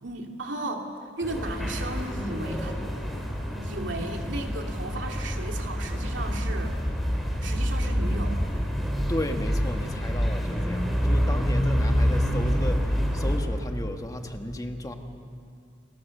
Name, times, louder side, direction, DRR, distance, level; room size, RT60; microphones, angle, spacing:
voice 1, 0.0-2.8 3.5-6.7 7.4-8.4, right 2 dB, 75° right, 2 dB, 2.7 m, -35 dB
sound 1, 1.2-13.4, equal, ahead, 3.5 m, -27 dB
voice 2, 9.1-14.9, left 1 dB, 20° left, 5 dB, 1.5 m, -34 dB
29.5 x 21.0 x 6.6 m, 2.5 s
head